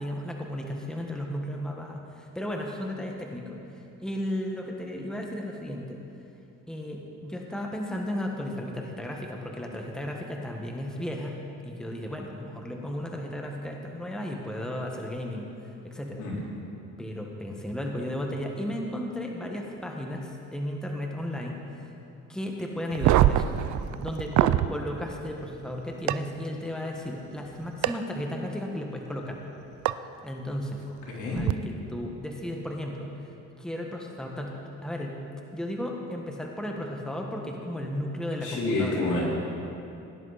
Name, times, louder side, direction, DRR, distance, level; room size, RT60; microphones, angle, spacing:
voice 1, 0.0-6.0 6.7-11.3 11.6-16.2 17.0-21.9 22.3-23.5 24.0-29.4 30.2-30.8 31.2-31.5 31.9-33.1 33.6-34.5 34.8-35.2 35.5-39.0, left 1 dB, ahead, 0 dB, 1.5 m, -34 dB
sound 1, 22.9-24.7 26.1-26.2 27.8-27.9 29.9-30.0 31.3-31.5, right 13 dB, 70° right, 0.5 m, -22 dB
voice 2, 31.1-31.4 38.4-39.2, left 2 dB, 80° left, -5 dB, 3.9 m, -28 dB
17.5 x 10.5 x 4.2 m, 2.7 s
cardioid pair, 90°, 30 cm